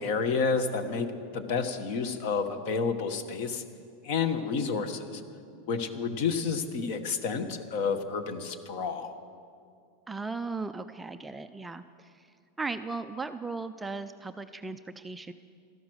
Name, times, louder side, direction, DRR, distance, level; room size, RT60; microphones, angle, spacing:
voice 1, 0.0-3.6 4.0-5.2 5.7-9.1, left 5 dB, 50° left, 9 dB, 1.2 m, -30 dB
voice 2, 10.1-12.3 12.6-15.3, right 3 dB, 5° right, 9 dB, 0.3 m, -37 dB
16.5 x 13.5 x 6.3 m, 2.3 s
supercardioid pair, 170°, 0 cm